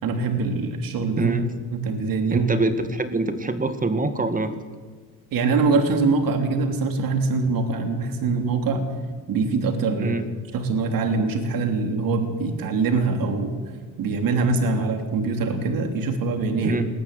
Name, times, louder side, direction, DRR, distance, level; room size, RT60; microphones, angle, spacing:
voice 1, 0.0-1.3 1.7-2.5 5.3-8.8 9.3-10.2 10.5-13.5 14.0-16.8, right 4 dB, 65° right, 6 dB, 3.2 m, -23 dB
voice 2, 1.2-1.5 2.3-4.5 10.0-10.3 16.6-16.9, right 3 dB, 20° right, 10 dB, 1.9 m, -25 dB
19.5 x 14.0 x 9.7 m, 1.5 s
cardioid pair, 95°, 37 cm